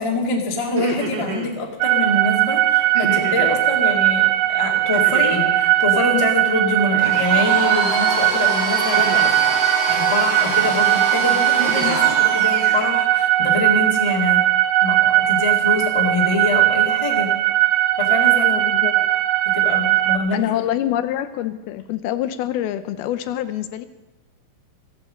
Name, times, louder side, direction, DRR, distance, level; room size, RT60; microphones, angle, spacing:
voice 1, 0.0-9.3 9.9-14.5 14.8-17.3 18.0-18.5 19.5-20.4, left 3 dB, 20° left, -1 dB, 0.9 m, -25 dB
sound 1, 0.6-1.5 2.9-3.6 4.9-5.6 6.9-7.5 8.9-9.6 10.4-10.8 11.3-12.1, right 4 dB, 60° right, 1.2 m, -31 dB
sound 2, 1.8-20.2, right 14 dB, 80° right, 2.4 m, -19 dB
Domestic sounds home sounds, 7.0-12.9, right 1 dB, 15° right, 2.6 m, -26 dB
voice 2, 18.3-18.9 20.3-23.9, left 12 dB, 80° left, 11 dB, 2.4 m, -25 dB
15.0 x 9.5 x 7.5 m, 1.1 s
omnidirectional pair, 4.5 m